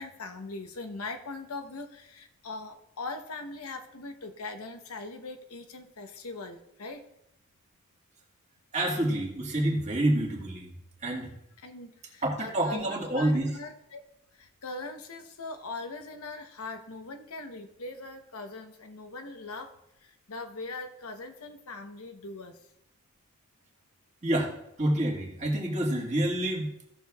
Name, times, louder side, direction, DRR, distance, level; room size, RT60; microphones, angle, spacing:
voice 1, 0.0-7.0 11.6-14.0 14.3-19.7 20.0-22.6, left 3 dB, 80° left, 6 dB, 0.9 m, -41 dB
voice 2, 8.7-10.7 11.0-11.3 12.2-13.6 24.2-24.5 24.8-26.7, right 1 dB, 30° right, -2 dB, 1.8 m, -28 dB
16.0 x 6.6 x 2.3 m, 0.81 s
head